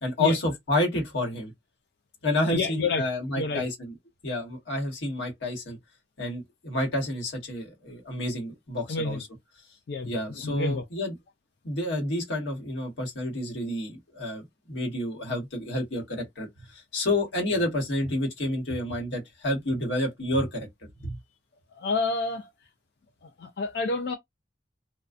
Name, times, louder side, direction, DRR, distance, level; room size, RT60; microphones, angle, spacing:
voice 1, 0.0-1.5 2.2-3.9 4.2-5.8 6.2-9.3 10.0-11.1 11.6-20.7 21.0-21.2, left 1 dB, 85° left, 1.1 m, -29 dB
voice 2, 2.5-3.1 3.4-3.6 8.9-9.2 9.9-10.8 21.8-22.5 23.4-24.1, left 4 dB, 60° left, 0.3 m, -29 dB
2.4 x 2.2 x 2.4 m
head